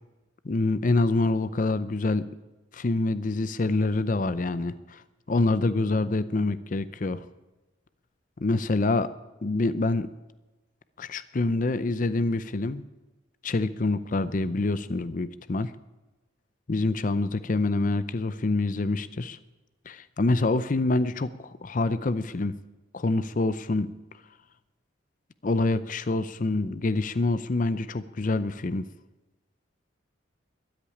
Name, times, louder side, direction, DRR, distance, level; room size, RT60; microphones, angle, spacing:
voice 1, 0.4-2.3 2.7-5.0 5.3-7.2 8.4-9.1 9.4-10.1 11.0-12.8 13.4-15.7 16.7-19.4 19.9-22.5 22.9-23.9 25.4-28.8, left 2 dB, 40° left, 14 dB, 0.5 m, -26 dB
13.5 x 10.0 x 10.0 m, 1.1 s
head